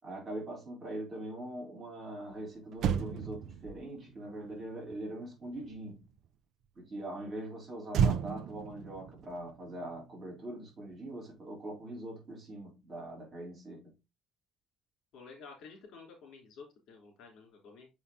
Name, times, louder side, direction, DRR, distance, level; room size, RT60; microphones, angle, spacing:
voice 1, 0.0-6.0 6.7-14.0, right 1 dB, 25° right, 3.5 m, -42 dB
Motor vehicle (road), 2.3-2.4 2.7-6.3 7.9-10.5 10.8-11.0, right 7 dB, 60° right, 0.5 m, -35 dB
voice 2, 15.1-17.9, left 4 dB, 65° left, 3.6 m, -51 dB
6.8 x 5.7 x 2.8 m
cardioid pair, 155°, 0 cm